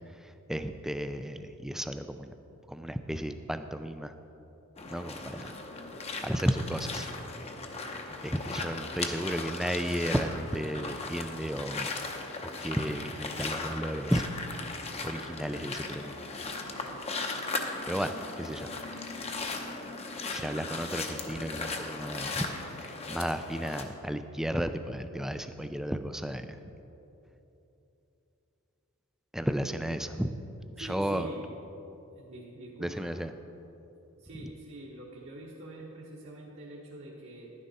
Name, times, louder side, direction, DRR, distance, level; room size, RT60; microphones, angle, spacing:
voice 1, 0.2-2.3 2.7-4.1 4.9-5.5 6.2-7.1 8.2-12.0 12.4-14.2 15.0-16.2 17.9-18.7 20.3-26.6 29.3-30.4 30.8-31.3 32.8-33.3, equal, ahead, 9 dB, 0.3 m, -33 dB
sound 1, 4.8-23.8, left 3 dB, 30° left, 0.7 m, -37 dB
voice 2, 30.8-31.4 31.8-33.1 34.2-37.5, right 1 dB, 60° right, -4 dB, 1.2 m, -45 dB
11.5 x 9.8 x 4.1 m, 3.0 s
head